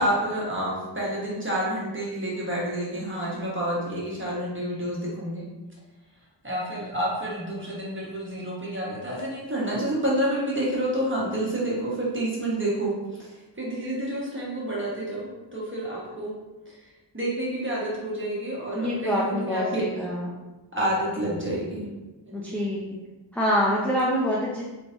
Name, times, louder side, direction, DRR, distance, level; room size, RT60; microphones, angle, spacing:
voice 1, 0.0-5.4 6.4-16.3 16.7-16.8 17.1-19.8 20.7-21.9 22.2-22.6, right 1 dB, 25° right, -6 dB, 1.4 m, -29 dB
voice 2, 18.7-20.4 22.3-23.0 23.3-24.7, equal, 5° left, -5 dB, 0.5 m, -26 dB
3.4 x 3.2 x 2.6 m, 1.1 s
cardioid pair, 45°, 45 cm